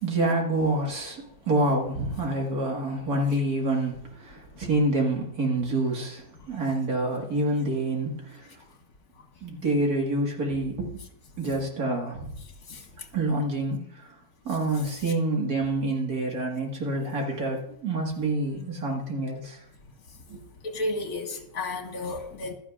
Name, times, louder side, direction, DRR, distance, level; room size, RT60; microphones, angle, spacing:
voice 1, 0.0-8.5 9.4-10.9 11.4-12.3 13.1-14.2 14.5-19.6 20.3-20.4, right 2 dB, 55° right, 0 dB, 2.2 m, -27 dB
voice 2, 20.6-22.5, left 2 dB, 55° left, 2 dB, 2.0 m, -32 dB
15.0 x 12.0 x 2.4 m, 0.71 s
omnidirectional pair, 2.0 m